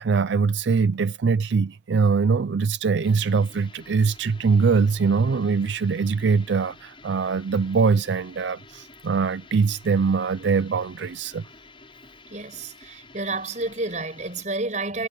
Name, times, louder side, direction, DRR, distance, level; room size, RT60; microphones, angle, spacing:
voice 1, 0.0-11.5, right 5 dB, 75° right, 0.4 m, -22 dB
sound 1, 3.0-14.5, left 3 dB, 30° left, 7.0 m, -50 dB
voice 2, 12.3-15.1, right 2 dB, 40° right, 5.9 m, -30 dB
head